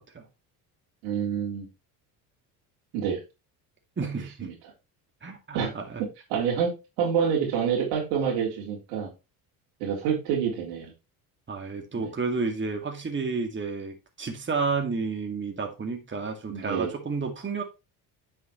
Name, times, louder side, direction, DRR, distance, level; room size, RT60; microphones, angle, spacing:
voice 1, 1.0-1.7 2.9-3.2 4.4-4.5 5.5-5.7 6.3-9.1 9.8-10.9 12.0-12.1 16.5-16.9, right 7 dB, 80° right, -1 dB, 3.7 m, -27 dB
voice 2, 4.0-4.5 5.2-6.0 11.5-17.6, right 4 dB, 25° right, 3 dB, 2.1 m, -31 dB
9.7 x 5.7 x 3.1 m, 0.26 s
hypercardioid pair, 70°, 45 cm